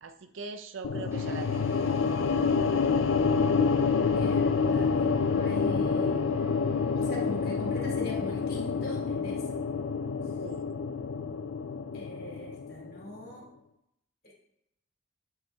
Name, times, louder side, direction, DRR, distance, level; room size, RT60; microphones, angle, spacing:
voice 1, 0.0-1.8 10.4-10.6, right 4 dB, 85° right, 7 dB, 0.5 m, -41 dB
sound 1, 0.8-13.1, left 5 dB, 85° left, 0.4 m, -28 dB
sound 2, 1.1-12.8, left 1 dB, 15° right, 0.9 m, -48 dB
voice 2, 4.1-9.6 11.9-13.4 14.2-14.4, left 1 dB, 50° left, -2 dB, 2.7 m, -42 dB
8.7 x 5.8 x 3.4 m, 0.82 s
head